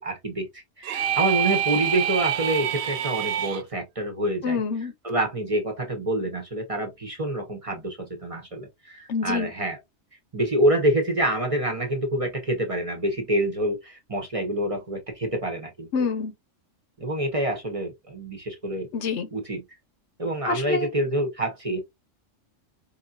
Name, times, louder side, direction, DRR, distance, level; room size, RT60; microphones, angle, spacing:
voice 1, 0.0-4.6 5.0-9.8 10.3-15.9 17.0-18.9 19.3-19.6 20.2-21.8, right 1 dB, 30° right, 0.9 m, -27 dB
sound 1, 0.8-3.6, right 10 dB, 65° right, 0.7 m, -26 dB
voice 2, 4.4-4.9 9.1-9.5 15.9-16.3 18.9-19.3 20.5-20.9, left 5 dB, 65° left, 1.0 m, -26 dB
4.8 x 2.7 x 2.4 m
omnidirectional pair, 1.3 m